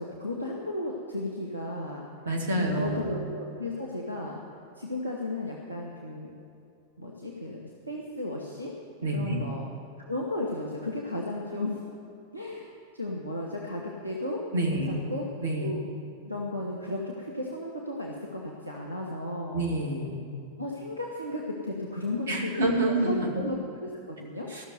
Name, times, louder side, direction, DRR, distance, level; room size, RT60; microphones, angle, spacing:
voice 1, 0.0-2.1 2.6-4.4 4.8-6.3 7.0-7.6 7.9-8.7 9.1-9.6 10.1-11.8 12.3-14.4 14.7-15.3 15.6-15.8 16.2-19.7 20.6-24.5, left 1 dB, 90° right, -2 dB, 1.2 m, -34 dB
voice 2, 2.3-3.1 9.0-9.4 14.5-15.0 15.4-15.7 19.5-20.2 22.3-23.3 24.5-24.6, right 1 dB, 65° right, 0 dB, 2.1 m, -27 dB
14.5 x 6.7 x 9.4 m, 2.6 s
figure-of-eight pair, 90°, 0 cm